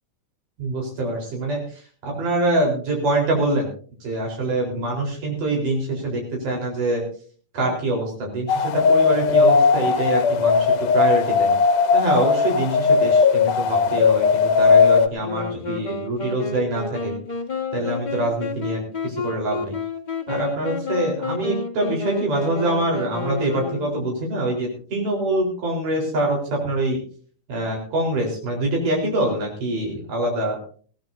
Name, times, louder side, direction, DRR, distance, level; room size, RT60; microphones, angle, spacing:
voice 1, 0.6-3.7 4.0-7.0 7.5-11.5 11.9-17.1 17.7-19.7 20.3-27.0 27.5-30.6, right 1 dB, 75° right, 0 dB, 5.7 m, -25 dB
sound 1, 8.5-15.1, left 5 dB, 80° left, 2.4 m, -17 dB
Wind instrument woodwind instrument, 15.2-24.2, left 4 dB, 30° left, 0.8 m, -30 dB
21.0 x 16.5 x 2.7 m, 0.43 s
omnidirectional pair, 3.7 m